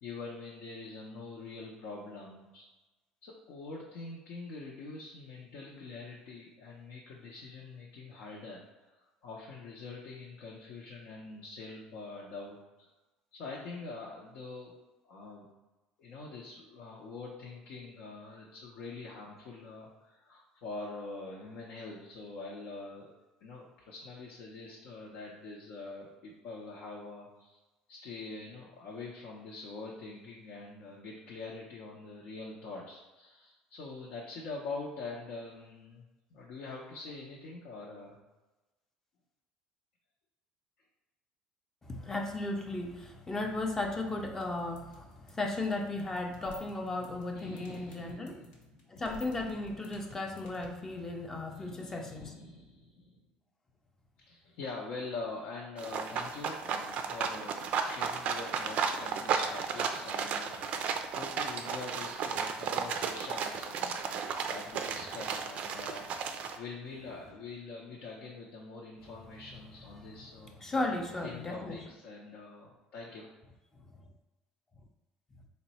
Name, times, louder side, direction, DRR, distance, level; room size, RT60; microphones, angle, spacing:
voice 1, 0.0-2.7 3.2-12.9 13.3-14.7 15.0-15.5 16.0-23.1 23.4-27.6 27.9-38.2 47.3-48.9 51.5-53.2 54.2-64.0 64.5-66.1 66.6-70.6 71.2-73.3, left 3 dB, 70° left, 0.7 m, -44 dB
voice 2, 41.8-48.4 48.9-52.3 70.6-71.8 73.9-74.0, left 2 dB, 15° left, 0.5 m, -35 dB
sound 1, 44.4-50.7, left 2 dB, 85° left, 1.1 m, -49 dB
sound 2, 55.8-66.6, right 6 dB, 50° right, 0.3 m, -34 dB
3.6 x 2.1 x 4.1 m
cardioid pair, 115°, 3 cm